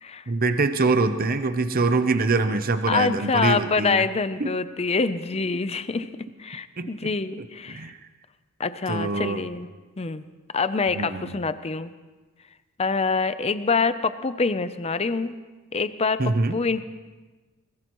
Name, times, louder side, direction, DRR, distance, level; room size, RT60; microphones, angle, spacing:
voice 1, 0.3-4.1 4.4-4.5 6.8-7.1 7.4-8.0 8.9-9.4 10.9-11.3 16.2-16.6, right 3 dB, 45° right, 9 dB, 0.7 m, -24 dB
voice 2, 2.9-7.9 8.6-9.7 10.0-10.3 10.5-11.9 12.8-15.4 15.7-16.8, left 4 dB, 30° left, 12 dB, 0.6 m, -26 dB
23.0 x 20.0 x 3.1 m, 1.3 s
head